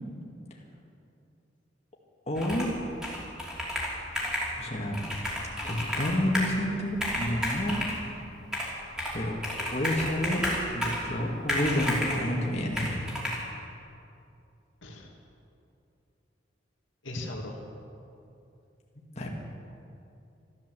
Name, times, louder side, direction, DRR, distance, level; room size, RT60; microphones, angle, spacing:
voice 1, 2.3-2.7 3.9-4.1 4.6-5.0 5.6-7.9 9.1-9.4 9.7-10.4 10.7-13.0 19.2-19.3, left 1 dB, 35° left, -2 dB, 1.9 m, -29 dB
Computer keyboard, 2.4-2.8 3.0-4.5 4.9-6.6 6.9-8.0 8.5-9.2 9.4-11.1 11.5-12.2 12.8-13.4, left 1 dB, 5° right, 3.1 m, -32 dB
voice 2, 17.0-17.6, left 1 dB, 80° left, -1 dB, 2.3 m, -37 dB
13.5 x 13.0 x 7.7 m, 2.7 s
head